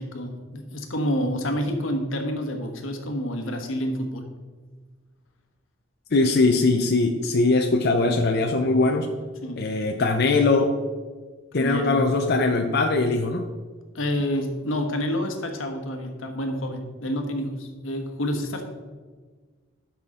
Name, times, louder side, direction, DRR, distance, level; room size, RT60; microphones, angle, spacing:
voice 1, 0.0-4.2 9.4-9.7 11.5-12.1 13.9-18.7, equal, 90° left, 4 dB, 1.3 m, -28 dB
voice 2, 6.1-9.1 9.6-10.7 11.5-13.5, left 3 dB, 55° left, 3 dB, 0.6 m, -21 dB
12.5 x 5.9 x 3.7 m, 1.4 s
head